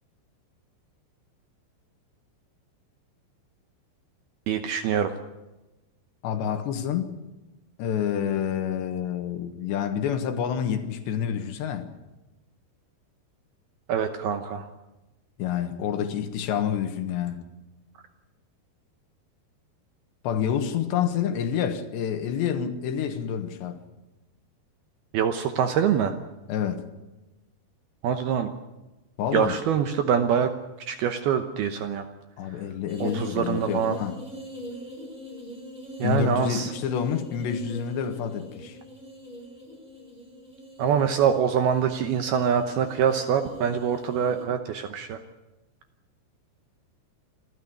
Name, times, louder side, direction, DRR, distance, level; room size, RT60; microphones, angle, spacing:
voice 1, 4.5-5.1 13.9-14.7 25.1-26.2 28.0-28.5 29.3-30.5 30.9-32.1 33.0-34.0 36.0-36.7 40.8-45.2, right 8 dB, 75° right, 2.4 m, -24 dB
voice 2, 6.2-7.1 7.8-11.9 15.4-17.4 20.3-23.8 26.5-26.8 29.2-29.6 32.4-34.2 36.0-38.8, left 8 dB, 70° left, 3.4 m, -28 dB
sound 1, 32.9-44.4, equal, 10° right, 4.9 m, -42 dB
27.5 x 13.0 x 9.5 m
omnidirectional pair, 5.5 m